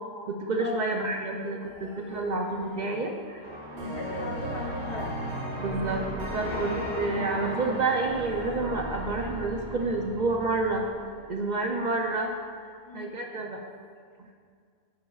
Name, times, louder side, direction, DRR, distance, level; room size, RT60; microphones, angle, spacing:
voice 1, 0.3-3.4 5.6-10.8 11.3-12.3 12.9-13.6, right 3 dB, 55° right, 1 dB, 0.6 m, -29 dB
sound 1, 1.6-8.6, left 2 dB, 40° left, 0.4 m, -43 dB
sound 2, 3.4-10.9, equal, 25° right, 1.1 m, -44 dB
voice 2, 3.7-5.1 11.7-11.8 12.8-13.1, left 2 dB, 60° left, -1 dB, 1.1 m, -37 dB
sound 3, 3.8-11.4, equal, 85° right, 1.2 m, -37 dB
10.0 x 6.3 x 2.3 m, 2.1 s
omnidirectional pair, 1.1 m